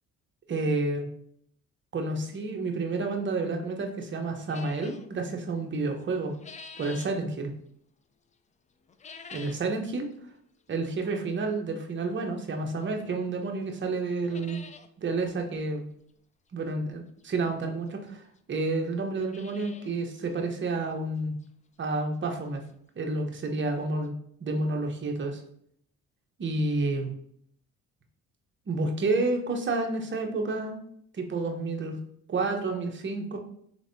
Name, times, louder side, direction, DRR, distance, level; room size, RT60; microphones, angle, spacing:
voice 1, 0.5-1.1 1.9-6.4 6.8-7.5 9.3-10.1 10.7-14.6 15.0-15.9 16.5-21.4 21.8-22.6 23.0-24.1 24.4-25.4 26.4-27.1 28.7-30.8 31.1-32.0 32.3-33.4, right 3 dB, 40° right, 3 dB, 0.9 m, -30 dB
sound 1, 4.5-5.1 6.0-7.2 8.9-9.7 10.1-10.2 11.0-11.1 12.8-12.9 13.3-13.4 13.7-13.8 14.1-14.9 15.2-15.3 15.5-15.6 17.2-17.3 18.1-18.2 18.4-18.5 19.0-20.0 20.3-20.4 20.9-21.0 21.4-21.5 23.2-23.3 23.5-23.6 24.0-24.1, left 5 dB, 25° left, 0.4 m, -47 dB
5.1 x 3.2 x 2.7 m, 0.66 s
supercardioid pair, 80°, 30 cm